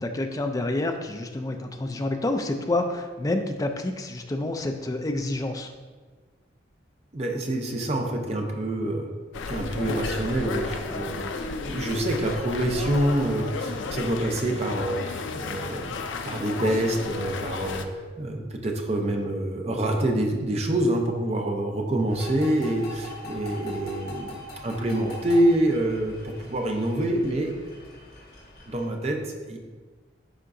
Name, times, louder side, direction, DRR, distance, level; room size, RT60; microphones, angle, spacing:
voice 1, 0.0-5.7, left 2 dB, 20° left, 5 dB, 0.4 m, -28 dB
voice 2, 7.1-9.1 9.5-15.9 16.2-17.9 18.2-27.6 28.7-29.6, right 1 dB, 35° right, 2 dB, 0.7 m, -26 dB
sound 1, 9.3-17.8, left 4 dB, 80° left, 0.4 m, -33 dB
sound 2, 22.1-28.9, left 1 dB, 55° left, 1.3 m, -42 dB
10.0 x 3.7 x 2.6 m, 1.4 s
head